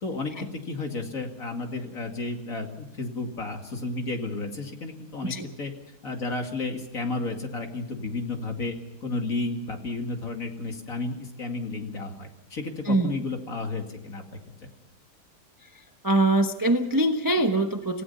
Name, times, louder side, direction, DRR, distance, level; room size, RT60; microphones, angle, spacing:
voice 1, 0.0-5.7 6.0-8.8 9.0-14.2 14.6-14.7, left 3 dB, 40° left, 3 dB, 2.7 m, -32 dB
voice 2, 12.9-13.2 16.0-18.0, right 1 dB, 20° right, 5 dB, 0.6 m, -23 dB
28.5 x 16.5 x 5.7 m, 0.93 s
omnidirectional pair, 2.3 m